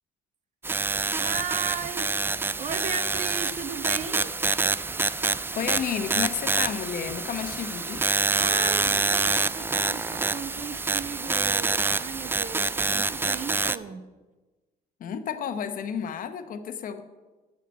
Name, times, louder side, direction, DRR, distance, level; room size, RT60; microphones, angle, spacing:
sound 1, 0.6-13.8, right 3 dB, 15° right, 0.3 m, -27 dB
voice 1, 1.1-2.2 2.6-4.3 8.4-14.1, right 6 dB, 45° right, 12 dB, 0.8 m, -36 dB
voice 2, 5.5-8.0 12.9-13.0 15.0-17.0, left 7 dB, 55° left, 9 dB, 1.0 m, -31 dB
10.0 x 5.9 x 8.6 m, 1.2 s
cardioid pair, 110°, 17 cm